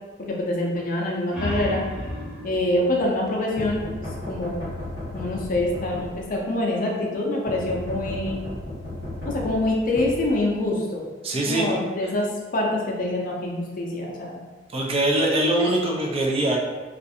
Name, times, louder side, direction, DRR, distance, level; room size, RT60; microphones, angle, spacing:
voice 1, 0.2-1.8 2.4-3.9 4.3-4.7 5.1-8.4 9.2-11.1 11.5-14.3, left 1 dB, 50° left, -2 dB, 0.4 m, -25 dB
sound 1, 1.2-4.5, equal, 5° right, 0.8 m, -35 dB
sound 2, 3.6-6.5 7.5-10.8, left 1 dB, 85° right, 1.5 m, -34 dB
voice 2, 11.2-11.8 12.0-12.1 14.7-16.6, right 1 dB, 30° right, -1 dB, 0.4 m, -23 dB
2.4 x 2.4 x 2.6 m, 1.3 s
head